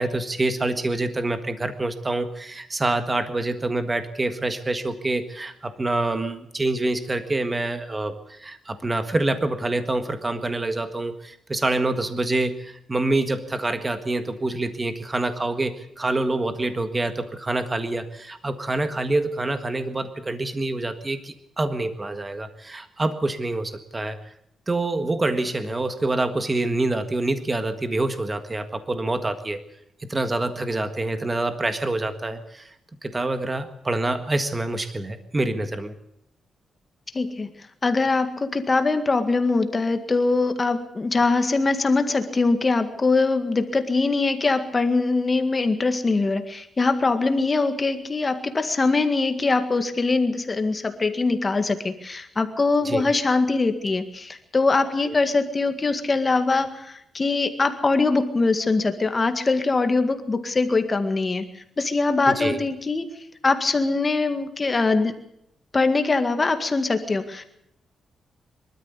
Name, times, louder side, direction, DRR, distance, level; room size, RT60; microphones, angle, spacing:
voice 1, 0.0-24.2 24.7-29.6 30.0-32.7 33.0-35.9 52.8-53.1 55.0-55.2 62.3-62.6, right 2 dB, 20° right, 9 dB, 1.6 m, -26 dB
voice 2, 37.1-37.5 37.8-61.5 61.8-63.1 63.4-65.2 65.7-67.5, left 3 dB, 25° left, 8 dB, 1.9 m, -22 dB
24.5 x 13.0 x 8.3 m, 0.77 s
cardioid pair, 120°, 0 cm